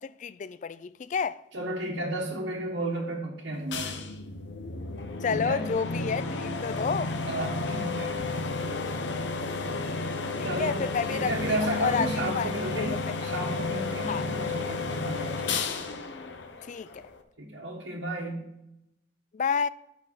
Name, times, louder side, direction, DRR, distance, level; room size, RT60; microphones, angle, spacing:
voice 1, 0.0-1.4 5.2-7.1 10.4-12.1 12.3-13.1 14.1-14.2 16.7-17.0 19.3-19.7, left 5 dB, 40° left, 0.3 m, -30 dB
voice 2, 1.5-4.0 5.3-5.7 7.3-8.1 8.7-9.0 10.4-10.8 11.1-15.6 17.4-18.4, right 1 dB, 75° right, 1.6 m, -33 dB
sound 1, 3.7-17.2, left 3 dB, 70° left, 0.9 m, -32 dB
6.5 x 5.9 x 7.4 m
head